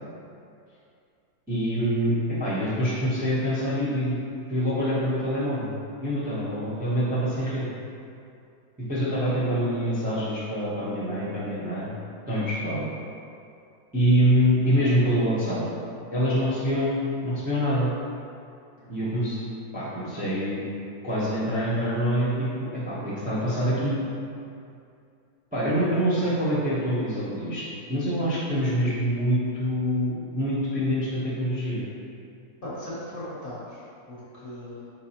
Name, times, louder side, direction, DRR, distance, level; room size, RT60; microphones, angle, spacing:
voice 1, 1.5-2.1 2.4-4.2 4.5-5.7 6.0-7.7 8.8-11.9 12.3-12.9 13.9-15.6 16.1-17.9 18.9-19.4 19.7-20.6 21.0-24.0 25.5-31.8, equal, 10° right, -10 dB, 0.5 m, -25 dB
voice 2, 32.6-34.9, left 1 dB, 45° left, -9 dB, 0.9 m, -38 dB
4.6 x 3.6 x 2.9 m, 2.5 s
omnidirectional pair, 1.7 m